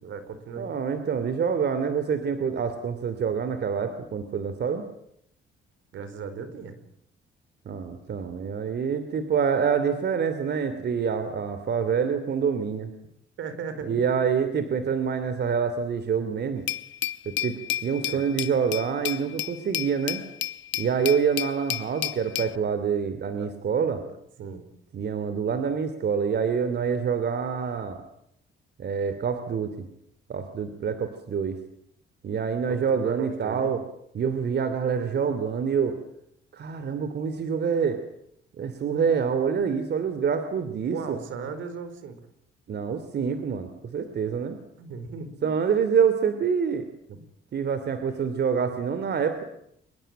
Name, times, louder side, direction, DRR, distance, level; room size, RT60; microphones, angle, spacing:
voice 1, 0.0-0.7 5.9-6.8 11.3-11.4 13.4-14.0 18.1-18.3 23.4-23.5 24.0-24.7 32.7-33.7 40.9-42.2 44.8-45.5 47.1-47.2, right 5 dB, 75° right, 11 dB, 4.6 m, -37 dB
voice 2, 0.6-4.9 7.7-12.9 13.9-16.7 17.2-20.2 20.8-24.0 24.9-28.0 28.8-29.9 30.3-31.6 32.2-33.8 34.1-36.0 36.5-38.0 38.6-41.2 42.7-44.6 45.4-46.9 47.5-49.4, right 6 dB, 55° right, 10 dB, 2.9 m, -26 dB
Glass, 16.7-22.5, left 12 dB, 70° left, 1.1 m, -32 dB
26.0 x 22.5 x 9.0 m, 0.74 s
cardioid pair, 90°, 20 cm